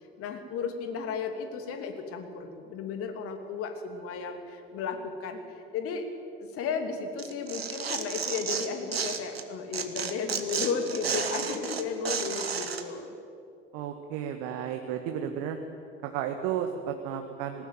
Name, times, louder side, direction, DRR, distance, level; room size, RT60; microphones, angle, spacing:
voice 1, 0.2-5.4 5.7-6.1 6.5-13.1, left 5 dB, 50° left, 6 dB, 2.8 m, -34 dB
Tearing, 7.2-9.4 9.7-12.8, right 6 dB, 80° right, 1.4 m, -32 dB
voice 2, 13.7-15.6 16.0-17.7, right 9 dB, 55° right, 5 dB, 1.5 m, -33 dB
19.0 x 19.0 x 9.3 m, 2.6 s
figure-of-eight pair, 65°, 30 cm